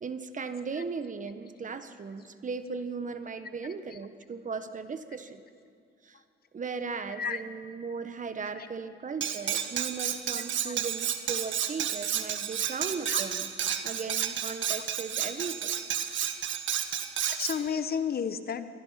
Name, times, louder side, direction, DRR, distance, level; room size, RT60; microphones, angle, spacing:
voice 1, 0.0-5.4 6.0-6.2 6.5-13.5 13.8-15.7, right 5 dB, 40° right, 10 dB, 1.5 m, -37 dB
voice 2, 7.1-7.4 8.6-8.7 10.6-10.8 13.1-13.2 17.3-18.7, left 7 dB, 50° left, 11 dB, 1.3 m, -32 dB
Cutlery silverware, 9.2-17.6, right 9 dB, 70° right, 1.7 m, -31 dB
28.5 x 22.0 x 6.0 m, 2.3 s
cardioid pair, 90°, 20 cm